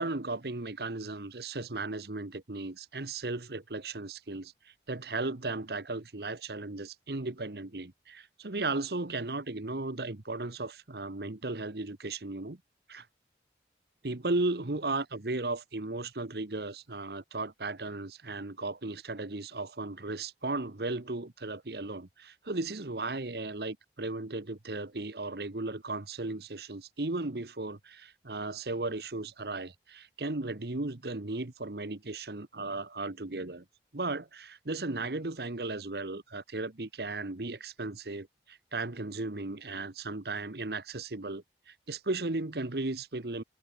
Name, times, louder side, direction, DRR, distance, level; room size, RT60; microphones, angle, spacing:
voice 1, 0.0-4.5 4.9-12.6 12.9-13.1 14.0-33.6 33.9-43.4, right 2 dB, 65° right, 1.3 m, -36 dB
open air
head